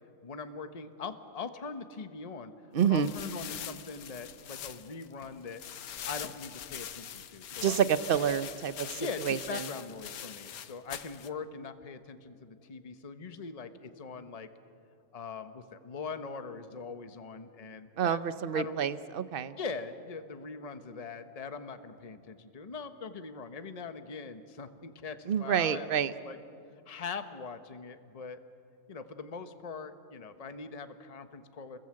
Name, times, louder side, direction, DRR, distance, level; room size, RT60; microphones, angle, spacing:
voice 1, 0.2-2.5 2.8-5.6 6.0-7.8 9.0-14.5 15.1-18.2 18.5-18.8 19.6-26.4 26.9-28.4 28.9-31.8, left 5 dB, 25° left, 9 dB, 1.0 m, -42 dB
voice 2, 2.7-3.1 7.6-9.7 18.0-19.5 25.3-26.1, right 8 dB, 45° right, 13 dB, 0.8 m, -28 dB
sound 1, 2.8-11.3, left 9 dB, 65° left, 1.3 m, -43 dB
29.5 x 21.5 x 7.7 m, 2.5 s
omnidirectional pair, 1.7 m